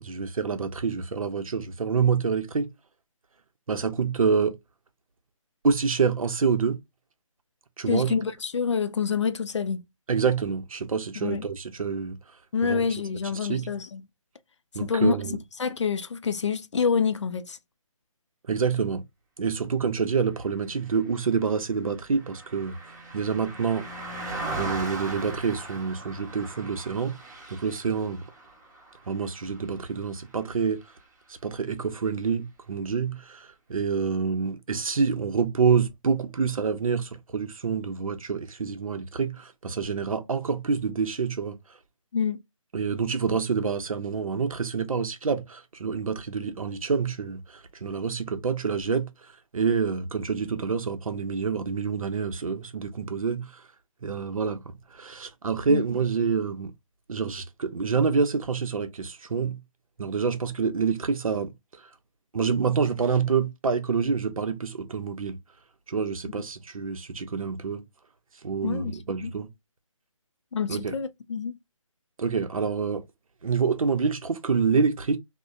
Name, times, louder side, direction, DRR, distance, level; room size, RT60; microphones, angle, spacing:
voice 1, 0.0-2.7 3.7-4.6 5.6-6.8 7.8-8.2 10.1-12.2 12.6-12.9 13.4-13.7 14.7-15.4 18.5-19.0 19.4-22.8 23.1-23.9 24.6-27.2 27.5-28.2 29.1-30.8 31.3-41.8 42.7-53.6 54.0-56.7 57.1-59.6 60.0-61.9 62.3-65.4 65.9-67.8 68.4-69.5 70.7-70.9 72.2-73.0 73.4-75.2, right 5 dB, 80° right, 0.7 m, -27 dB
voice 2, 7.9-9.8 11.2-11.4 12.5-14.0 14.8-15.2 15.6-17.6 42.1-42.4 55.7-55.8 68.6-69.3 70.5-71.5, left 6 dB, 60° left, 0.4 m, -27 dB
Car passing by, 20.9-30.4 30.8-31.0, right 2 dB, 30° right, 1.0 m, -39 dB
2.8 x 2.1 x 2.4 m
hypercardioid pair, 170°, 17 cm